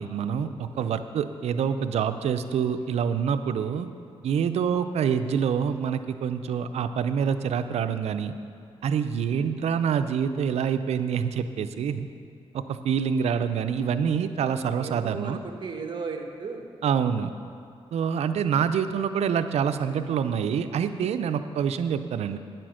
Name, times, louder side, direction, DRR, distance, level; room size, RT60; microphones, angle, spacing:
voice 1, 0.0-3.9 4.2-8.3 8.8-12.1 12.5-15.4 16.8-17.3 17.9-22.4, right 7 dB, 80° right, 10 dB, 0.5 m, -26 dB
voice 2, 14.8-16.7 21.2-21.6, right 4 dB, 45° right, 4 dB, 1.2 m, -36 dB
9.6 x 7.7 x 6.4 m, 2.4 s
cardioid pair, 90°, 11 cm